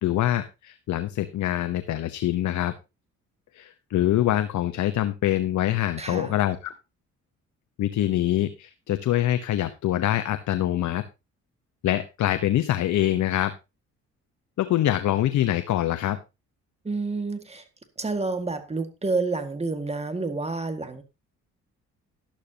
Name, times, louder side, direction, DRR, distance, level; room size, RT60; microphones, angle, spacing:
voice 1, 0.0-2.7 3.5-6.7 7.8-11.0 11.8-13.5 14.6-16.2, left 13 dB, 70° left, 0.9 m, -24 dB
voice 2, 6.0-6.3 16.8-17.6 18.0-21.0, right 3 dB, 20° right, 1.9 m, -29 dB
12.0 x 12.0 x 2.8 m
cardioid pair, 90°, 30 cm